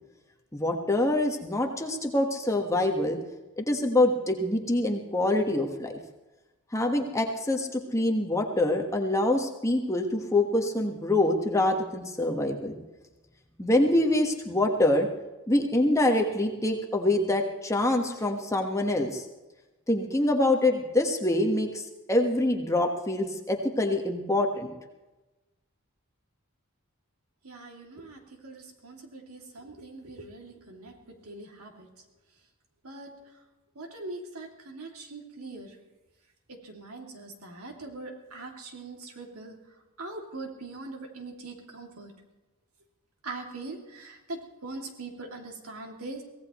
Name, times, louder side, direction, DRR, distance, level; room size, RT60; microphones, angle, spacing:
voice 1, 0.5-3.2 3.6-5.9 6.7-12.8 13.6-15.1 15.5-19.2 19.9-21.8 22.1-24.7, left 1 dB, 15° left, 2 dB, 1.4 m, -25 dB
voice 2, 27.4-31.9 32.8-33.1 33.7-35.7 36.5-39.6 40.0-42.1 43.2-46.2, right 2 dB, 80° right, 2 dB, 2.6 m, -42 dB
23.5 x 17.0 x 3.1 m, 1.1 s
head